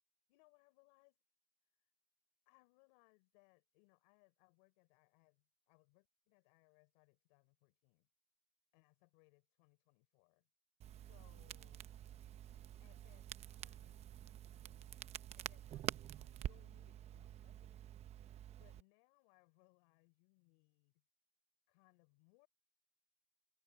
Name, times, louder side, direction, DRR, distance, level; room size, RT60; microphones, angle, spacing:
voice 1, 0.3-1.2 1.6-1.9 2.4-8.1 8.7-10.5 10.9-11.9 12.8-15.0 15.3-18.0 18.6-21.0 21.7-22.5, left 30 dB, 75° left, 4.8 m, -72 dB
Crackle, 10.8-18.8, right 11 dB, 30° right, 0.7 m, -49 dB
cardioid pair, 155°, 21 cm